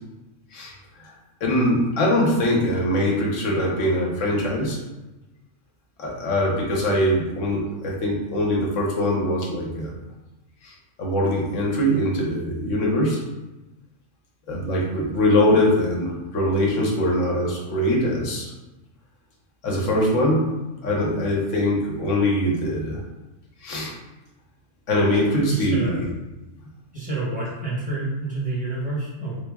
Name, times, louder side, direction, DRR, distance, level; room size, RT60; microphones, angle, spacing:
voice 1, 1.4-4.8 6.0-9.9 10.6-10.7 11.0-13.2 14.5-18.5 19.6-20.5 20.8-23.0 23.6-23.9 24.9-26.0, left 1 dB, 80° left, -3 dB, 1.1 m, -22 dB
voice 2, 25.5-26.0 26.9-29.4, right 2 dB, 5° right, -8 dB, 1.0 m, -28 dB
3.6 x 2.0 x 3.4 m, 1.0 s
omnidirectional pair, 1.3 m